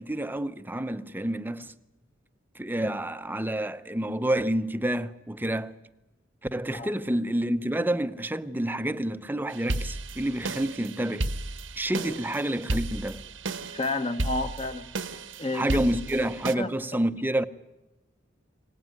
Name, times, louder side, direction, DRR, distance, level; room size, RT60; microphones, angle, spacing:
voice 1, 0.0-1.8 2.5-5.8 6.5-11.3 11.8-13.2 15.5-17.5, right 1 dB, 10° right, 0.7 m, -28 dB
sound 1, 9.5-16.6, right 2 dB, 80° right, 1.3 m, -33 dB
voice 2, 13.7-14.9 15.4-15.8 16.6-16.7, left 2 dB, 30° left, 1.3 m, -30 dB
23.5 x 19.0 x 9.4 m
head